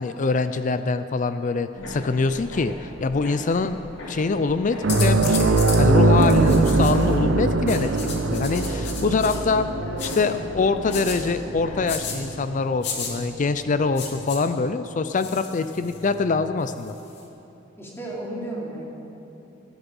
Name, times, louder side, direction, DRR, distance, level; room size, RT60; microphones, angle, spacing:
voice 1, 0.0-3.8 4.1-9.7 10.0-16.9, left 4 dB, 40° left, 10 dB, 0.4 m, -24 dB
sound 1, 1.7-12.0, left 1 dB, 80° left, 2.9 m, -39 dB
sound 2, 4.8-13.8 14.1-14.3 16.3-16.4, right 2 dB, 75° right, 0.7 m, -22 dB
sound 3, 4.9-5.8 6.2-7.1 7.7-9.4 10.0-10.2 10.9-11.2 11.9-12.2 12.8-13.1 14.0-14.4 15.2-16.1 16.7-17.2, left 6 dB, 65° left, 2.4 m, -33 dB
voice 2, 9.8-10.2 17.8-18.8, right 1 dB, 15° left, -4 dB, 3.1 m, -34 dB
18.5 x 13.5 x 5.4 m, 2.9 s
head